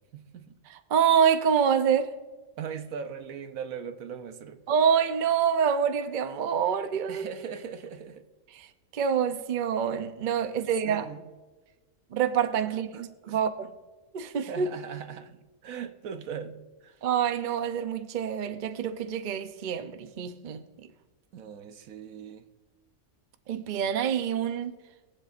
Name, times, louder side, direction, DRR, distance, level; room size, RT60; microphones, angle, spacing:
voice 1, 0.1-0.6 2.6-4.6 7.1-8.2 10.4-10.5 10.8-11.2 12.7-13.4 14.5-17.0 21.3-22.4, right 7 dB, 75° right, 1.2 m, -40 dB
voice 2, 0.7-2.1 4.7-7.2 8.5-8.7 8.9-11.1 12.1-12.9 13.3-13.7 14.1-14.7 17.0-20.6 23.5-24.8, right 7 dB, 45° right, 0.6 m, -26 dB
21.5 x 7.7 x 2.5 m
omnidirectional pair, 1.5 m